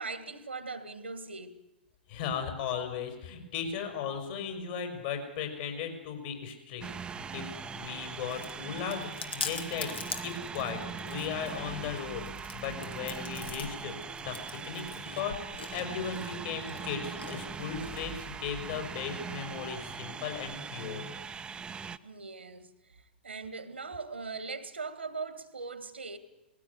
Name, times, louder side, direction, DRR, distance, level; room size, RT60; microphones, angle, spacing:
voice 1, 0.0-1.6 22.0-26.2, right 4 dB, 90° right, 2.2 m, -40 dB
voice 2, 2.1-9.9 10.2-14.4 14.6-15.3 15.7-21.0, left 7 dB, 55° left, 5.7 m, -37 dB
sound 1, 6.8-22.0, right 6 dB, 15° right, 0.8 m, -41 dB
Chewing mastication, 7.7-18.4, left 5 dB, 80° left, 2.3 m, -44 dB
20.0 x 16.0 x 9.6 m
hypercardioid pair, 110°, 6 cm